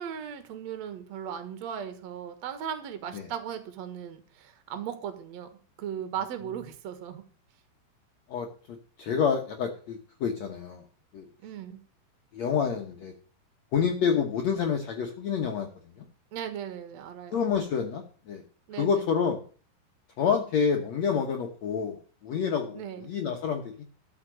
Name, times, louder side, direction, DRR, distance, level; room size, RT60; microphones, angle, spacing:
voice 1, 0.0-5.5 5.8-7.2 11.4-11.8 16.3-17.5 18.7-19.0 22.7-23.1, right 9 dB, 65° right, 9 dB, 1.8 m, -37 dB
voice 2, 8.3-10.8 11.1-11.3 12.3-13.1 13.7-15.7 17.3-18.4 18.8-19.4 20.2-23.8, left 6 dB, 75° left, 3 dB, 1.5 m, -28 dB
13.5 x 5.8 x 7.6 m, 0.41 s
omnidirectional pair, 4.9 m